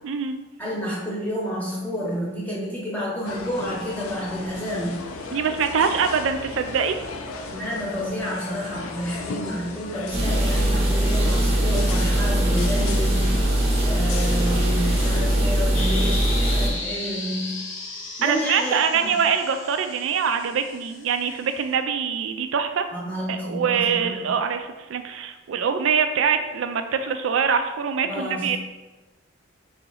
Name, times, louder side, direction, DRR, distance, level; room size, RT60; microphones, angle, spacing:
voice 1, 0.0-0.3 5.3-7.0 18.2-22.8 23.3-28.6, right 6 dB, 70° right, 8 dB, 0.3 m, -24 dB
voice 2, 0.6-5.0 7.5-13.4 13.8-17.6 18.2-18.8 19.0-19.1 22.9-24.3 28.0-28.6, equal, 10° left, -5 dB, 0.8 m, -30 dB
sound 1, 3.2-15.4, left 4 dB, 85° left, 0.5 m, -36 dB
sound 2, 10.1-16.7, right 1 dB, 30° right, 0.7 m, -21 dB
sound 3, 15.7-21.6, left 2 dB, 65° left, 0.8 m, -35 dB
4.1 x 2.9 x 3.8 m, 1.2 s
head